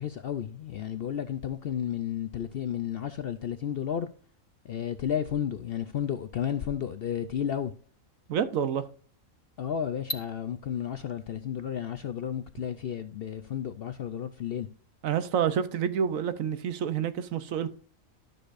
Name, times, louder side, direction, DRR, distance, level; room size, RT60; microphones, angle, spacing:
voice 1, 0.0-4.1 4.6-7.7 9.6-14.7, left 9 dB, 65° left, 0.6 m, -32 dB
voice 2, 8.3-8.8 15.0-17.7, right 8 dB, 75° right, 1.1 m, -28 dB
12.0 x 6.6 x 2.5 m
omnidirectional pair, 1.5 m